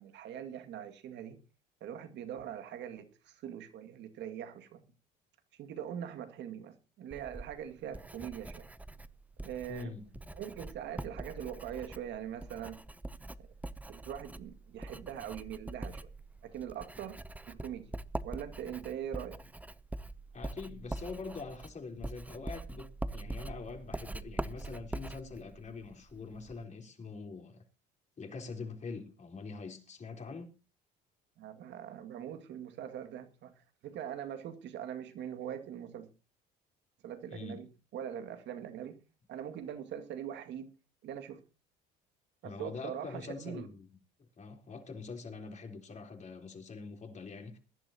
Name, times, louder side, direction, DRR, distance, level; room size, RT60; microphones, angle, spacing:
voice 1, 0.0-1.4 1.8-4.8 5.5-8.6 9.4-10.0 10.3-12.8 13.9-16.1 16.4-17.2 17.5-17.9 18.2-19.4 31.4-33.5 33.8-36.1 37.0-37.7 37.9-39.0 39.3-40.7 41.0-41.4 42.4-43.7, right 9 dB, 65° right, 2.1 m, -42 dB
Writing, 7.1-26.6, right 2 dB, 5° right, 0.7 m, -43 dB
voice 2, 9.7-10.1 20.3-27.6 28.2-30.5 37.3-37.6 42.4-43.9 44.4-47.6, left 4 dB, 35° left, 3.9 m, -44 dB
22.0 x 11.0 x 2.9 m
supercardioid pair, 75°, 20 cm